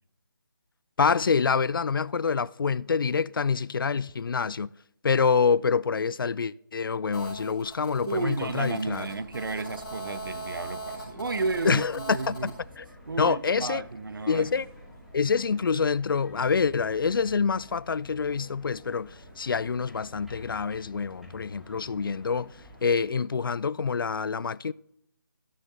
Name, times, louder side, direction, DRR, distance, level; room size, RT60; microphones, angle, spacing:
voice 1, 1.0-4.7 5.0-9.1 11.6-12.5 12.8-12.9 13.2-13.8 14.3-14.7 15.1-22.5 22.8-24.7, left 5 dB, 75° left, 0.4 m, -26 dB
Telephone, 7.1-12.5, right 1 dB, 15° left, 3.3 m, -40 dB
voice 2, 8.1-12.5 13.1-14.6, right 3 dB, 75° right, 0.8 m, -32 dB
sound 1, 8.9-23.1, left 1 dB, ahead, 1.4 m, -50 dB
13.0 x 6.5 x 4.0 m
figure-of-eight pair, 165°, 11 cm